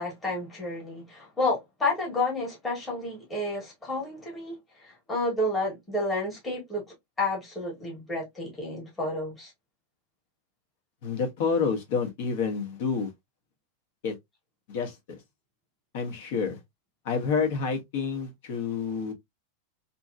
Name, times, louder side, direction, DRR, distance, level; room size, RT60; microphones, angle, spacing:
voice 1, 0.0-6.8 7.2-9.5, left 2 dB, 10° left, 1.3 m, -30 dB
voice 2, 11.0-13.1 14.0-14.2 14.7-15.2 15.9-16.6 17.0-19.1, left 5 dB, 50° left, 1.0 m, -28 dB
2.8 x 2.6 x 2.4 m
supercardioid pair, 180°, 0 cm